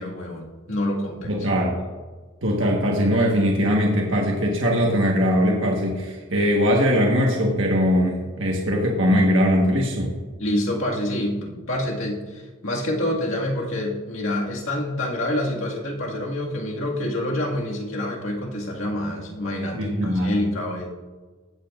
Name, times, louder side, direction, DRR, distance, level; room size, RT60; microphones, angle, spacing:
voice 1, 0.0-1.4 10.4-20.9, left 1 dB, 90° left, -2 dB, 1.9 m, -27 dB
voice 2, 1.2-1.8 2.4-10.1 19.7-20.4, equal, 75° right, -1 dB, 1.4 m, -21 dB
15.5 x 8.5 x 2.5 m, 1.3 s
head